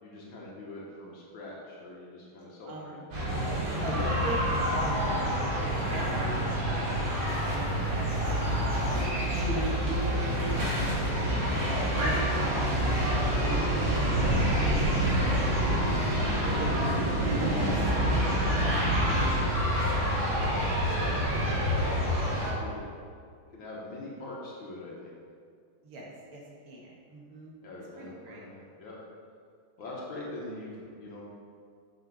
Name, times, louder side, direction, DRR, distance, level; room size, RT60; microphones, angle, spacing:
voice 1, 0.0-3.0 5.5-5.7 17.6-17.7 20.4-22.0 22.2-22.9 23.5-25.1 27.6-29.0 29.8-31.2, left 2 dB, 65° left, -4 dB, 1.8 m, -42 dB
voice 2, 2.7-3.0 3.8-7.0 7.3-9.0 9.3-11.6 11.9-14.4 14.6-15.8 16.4-17.0 17.4-20.0 21.0-21.2 21.5-21.6 25.8-27.5 28.0-28.4, right 1 dB, 80° right, -3 dB, 2.2 m, -39 dB
sound 1, 3.1-22.5, equal, 60° right, 2.5 m, -27 dB
7.0 x 5.6 x 3.9 m, 2.2 s
omnidirectional pair, 2.4 m